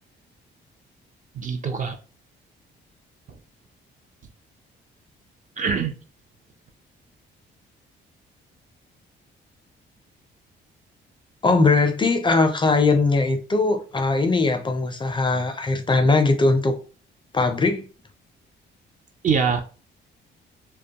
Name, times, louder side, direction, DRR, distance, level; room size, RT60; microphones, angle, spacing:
voice 1, 1.3-2.0 3.3-3.4 5.6-6.0 19.2-19.6, right 6 dB, 40° right, 0.4 m, -23 dB
voice 2, 11.4-16.8 17.3-17.9, left 3 dB, 25° left, 0.4 m, -20 dB
2.2 x 2.2 x 2.7 m
cardioid pair, 90°, 20 cm